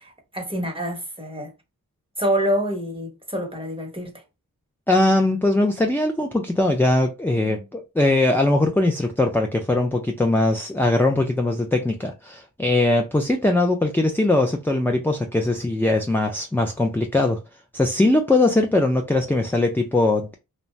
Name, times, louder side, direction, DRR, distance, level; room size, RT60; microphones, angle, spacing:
voice 1, 0.0-1.5 2.2-4.2, equal, 15° right, 1.0 m, -26 dB
voice 2, 4.9-17.4 17.7-20.3, left 2 dB, 5° left, 0.4 m, -21 dB
2.6 x 2.1 x 3.1 m
wide cardioid pair, 45°, 36 cm